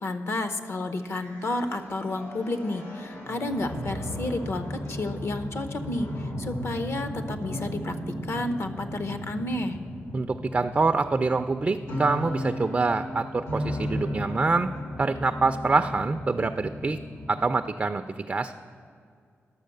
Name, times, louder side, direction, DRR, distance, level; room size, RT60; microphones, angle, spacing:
voice 1, 0.0-8.0 8.2-9.8, left 2 dB, 60° left, 9 dB, 0.8 m, -31 dB
sound 1, 1.1-17.5, left 1 dB, 85° left, 2.5 m, -36 dB
voice 2, 10.1-14.7 15.0-17.0 17.3-18.5, right 3 dB, 30° right, 8 dB, 0.3 m, -25 dB
11.5 x 7.0 x 6.6 m, 2.3 s
wide cardioid pair, 100°, 5 cm